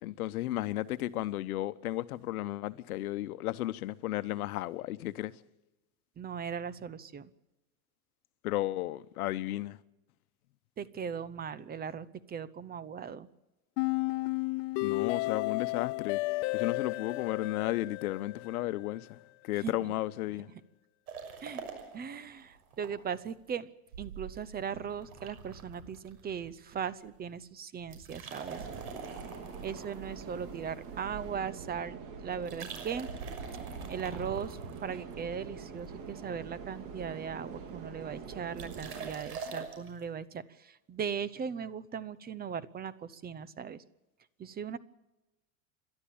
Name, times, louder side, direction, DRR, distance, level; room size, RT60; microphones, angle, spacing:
voice 1, 0.0-5.3 8.4-9.8 14.8-16.2 16.5-19.2 19.4-20.5, left 15 dB, 85° left, 1.0 m, -34 dB
voice 2, 6.2-7.3 10.8-13.3 19.6-19.9 21.4-21.6 21.9-23.7 24.0-28.6 29.6-33.1 33.9-43.8 44.4-44.8, right 7 dB, 20° right, 0.9 m, -38 dB
sound 1, 13.8-18.8, left 22 dB, 55° left, 0.7 m, -33 dB
sound 2, 21.1-22.9 23.2-23.3 23.9-26.8 27.1-27.4 27.8-31.1 32.3-35.3 35.8-36.3 36.6-36.7 36.9-37.0 37.2-37.5 38.5-39.9, right 5 dB, 85° right, 6.4 m, -44 dB
sound 3, 28.5-39.1, right 5 dB, 45° right, 3.9 m, -45 dB
29.0 x 13.0 x 8.7 m
supercardioid pair, 130°, 43 cm